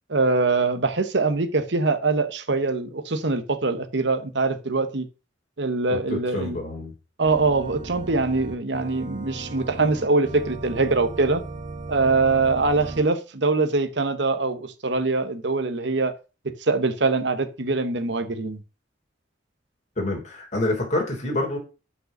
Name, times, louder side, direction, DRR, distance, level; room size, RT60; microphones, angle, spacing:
voice 1, 0.1-5.1 5.6-6.6 7.2-11.4 11.9-16.1 16.4-18.6, right 3 dB, 65° right, 1.0 m, -23 dB
voice 2, 5.9-6.9 20.0-21.6, left 1 dB, 40° left, 3.4 m, -27 dB
Organ, 7.2-13.0, right 2 dB, 45° right, 1.4 m, -37 dB
6.6 x 5.5 x 6.4 m
head